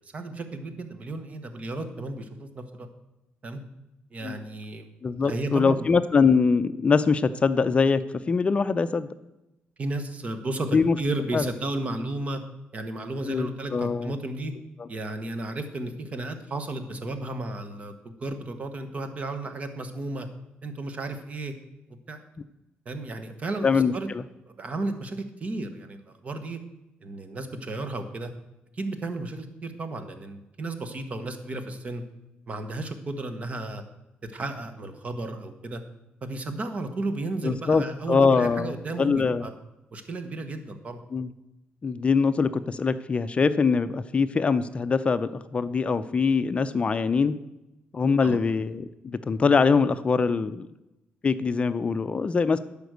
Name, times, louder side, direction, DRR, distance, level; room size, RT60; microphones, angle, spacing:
voice 1, 0.0-2.9 3.4-3.6 4.1-4.9 5.2-5.9 9.8-12.4 12.7-14.5 14.9-20.3 20.6-21.5 22.1-22.2 22.8-24.1 24.6-26.6 27.0-28.3 28.7-32.0 32.5-33.8 34.3-35.8 36.2-39.5 39.9-41.0 48.2-48.4, right 2 dB, 35° right, 8 dB, 1.3 m, -33 dB
voice 2, 5.0-9.1 10.7-11.0 11.3-11.5 13.3-14.1 14.8-14.9 23.6-24.2 37.4-39.5 41.1-41.3 41.8-47.3 47.9-50.7 51.2-52.6, left 5 dB, 30° left, 12 dB, 0.5 m, -23 dB
11.5 x 5.2 x 8.0 m, 0.94 s
cardioid pair, 110°, 4 cm